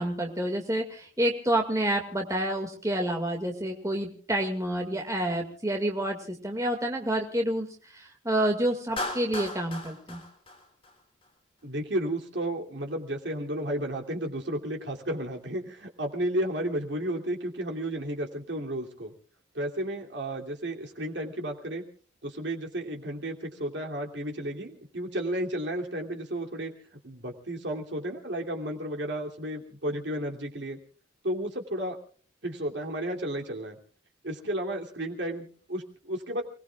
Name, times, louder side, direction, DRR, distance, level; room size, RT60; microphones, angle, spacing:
voice 1, 0.0-7.7 7.9-10.2, right 1 dB, 15° right, 2 dB, 2.0 m, -28 dB
Clapping, 9.0-11.3, left 2 dB, 30° left, 3.2 m, -36 dB
voice 2, 11.6-19.1 19.5-21.8 22.2-26.7 27.0-30.8 31.2-32.0 32.4-33.8 34.2-36.4, right 1 dB, 65° right, 1 dB, 2.8 m, -33 dB
29.5 x 19.5 x 2.4 m, 0.43 s
head